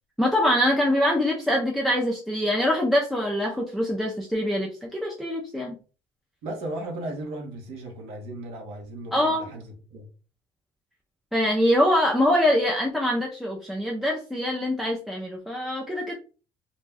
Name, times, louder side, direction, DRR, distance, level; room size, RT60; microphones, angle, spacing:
voice 1, 0.2-5.7 9.1-9.5 11.3-16.1, left 1 dB, ahead, 0.3 m, -24 dB
voice 2, 6.4-10.1, right 1 dB, 80° right, 0.9 m, -36 dB
2.5 x 2.1 x 3.3 m
cardioid pair, 160°, 10 cm